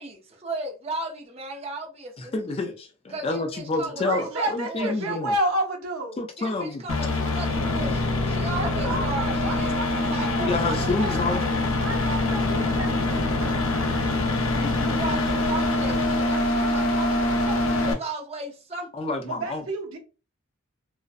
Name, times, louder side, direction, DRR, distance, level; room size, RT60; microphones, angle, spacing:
voice 1, 0.0-2.3 3.1-5.2 6.4-11.6 14.8-18.9, right 2 dB, 30° right, 0.5 m, -36 dB
voice 2, 2.3-5.3 6.2-6.8 8.6-9.1 10.4-11.4 14.5-14.9 18.9-19.6, left 3 dB, 25° left, 0.3 m, -29 dB
voice 3, 3.9-6.2 8.6-10.9 11.2-11.3 11.7-15.1 19.2-20.0, right 1 dB, 85° right, 0.7 m, -32 dB
sound 1, 6.9-17.9, left 2 dB, 75° left, 0.6 m, -24 dB
2.5 x 2.1 x 2.4 m
head